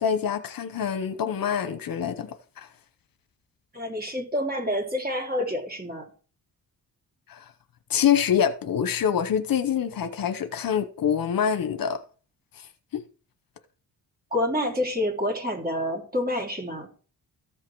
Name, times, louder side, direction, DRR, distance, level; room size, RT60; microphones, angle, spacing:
voice 1, 0.0-2.7 7.3-7.4 7.9-12.0 12.6-13.0, left 8 dB, 60° left, 0.9 m, -26 dB
voice 2, 3.7-6.1 14.3-16.9, left 1 dB, 25° right, 3.1 m, -28 dB
14.0 x 5.6 x 4.6 m
cardioid pair, 115°, 38 cm